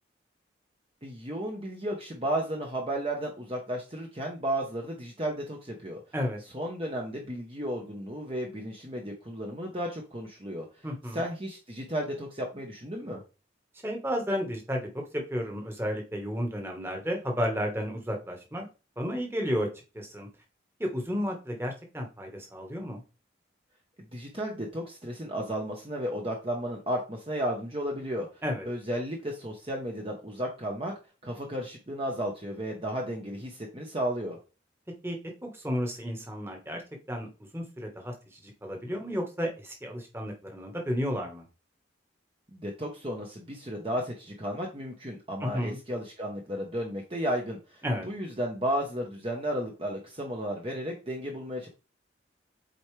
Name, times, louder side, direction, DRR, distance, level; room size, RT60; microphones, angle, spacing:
voice 1, 1.0-6.0 6.5-10.9 11.1-13.2 24.1-30.9 31.2-34.4 42.5-51.7, equal, 30° right, 1 dB, 1.0 m, -33 dB
voice 2, 10.8-11.2 13.8-18.7 19.0-19.7 19.9-20.3 20.8-23.0 28.4-28.6 35.0-36.8 37.1-37.3 37.5-41.5 45.4-45.8 47.8-48.1, equal, 15° right, 2 dB, 1.4 m, -32 dB
8.0 x 4.5 x 3.3 m, 0.31 s
head